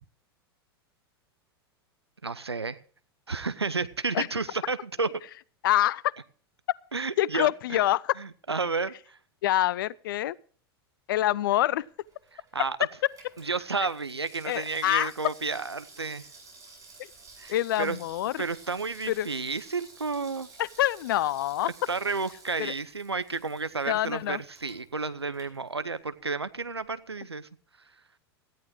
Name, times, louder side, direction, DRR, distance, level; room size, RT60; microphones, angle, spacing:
voice 1, 2.2-2.8 3.3-5.1 6.9-7.9 8.2-9.2 12.5-12.8 13.4-16.2 17.4-18.0 18.4-20.5 21.6-27.5, right 4 dB, 85° right, 14 dB, 0.9 m, -31 dB
voice 2, 5.6-6.1 7.2-8.0 9.4-10.4 11.1-11.9 14.5-15.1 17.5-18.4 19.1-19.3 20.6-21.7 22.6-22.7 23.9-24.4, left 14 dB, 55° left, 24 dB, 0.6 m, -26 dB
Water tap faucet / Sink (filling or washing), 11.9-26.2 26.5-26.6, right 3 dB, 25° right, 7.3 m, -53 dB
18.0 x 13.5 x 3.1 m, 0.43 s
figure-of-eight pair, 90°, 13 cm